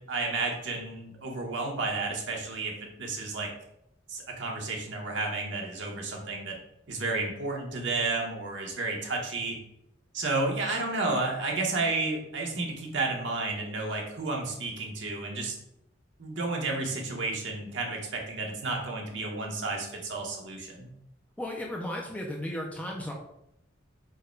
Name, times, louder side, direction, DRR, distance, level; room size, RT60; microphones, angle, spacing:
voice 1, 0.1-3.5 4.1-6.6 6.9-9.6 10.1-15.5 16.2-20.9, right 3 dB, 65° right, -1 dB, 1.0 m, -31 dB
voice 2, 21.4-23.1, left 1 dB, 5° left, 0 dB, 0.4 m, -35 dB
4.8 x 2.2 x 4.5 m, 0.81 s
head